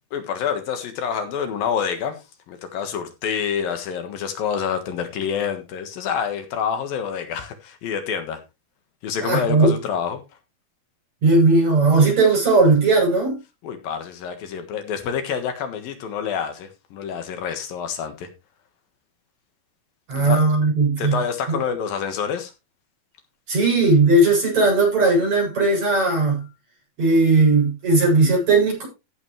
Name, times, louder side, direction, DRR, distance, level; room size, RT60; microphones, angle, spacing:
voice 1, 0.1-2.2 2.5-8.4 9.0-10.2 13.6-18.3 20.2-20.4 21.0-22.5, left 7 dB, 75° left, 3.3 m, -27 dB
voice 2, 9.2-9.8 11.2-13.4 20.1-21.2 23.5-26.4 27.0-28.9, right 3 dB, 50° right, 9.0 m, -17 dB
15.0 x 8.5 x 3.3 m
omnidirectional pair, 4.2 m